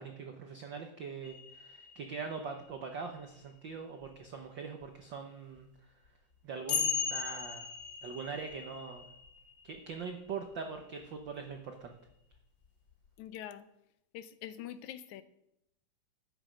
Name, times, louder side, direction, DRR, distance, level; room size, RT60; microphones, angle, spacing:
voice 1, 0.0-5.7 6.4-7.7 8.0-9.1 9.6-11.9, right 5 dB, 85° right, 4 dB, 1.0 m, -42 dB
sound 1, 1.2-2.8 4.0-4.1 5.6-5.7 6.7-10.8 12.3-12.4, left 7 dB, 45° left, 1.4 m, -38 dB
voice 2, 13.2-13.6 14.1-15.2, left 11 dB, 80° left, 13 dB, 2.0 m, -44 dB
12.5 x 9.3 x 5.1 m, 0.81 s
omnidirectional pair, 3.5 m